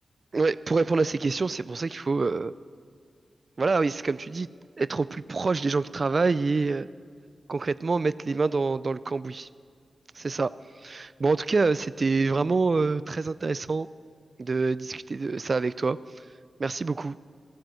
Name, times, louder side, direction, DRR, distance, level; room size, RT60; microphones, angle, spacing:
voice 1, 0.3-2.5 3.6-4.5 4.8-6.9 7.5-9.5 10.1-10.5 10.8-13.9 14.4-16.0 16.6-17.2, right 4 dB, 50° right, 17 dB, 0.3 m, -26 dB
15.5 x 9.3 x 7.7 m, 2.1 s
cardioid pair, 60°, 0 cm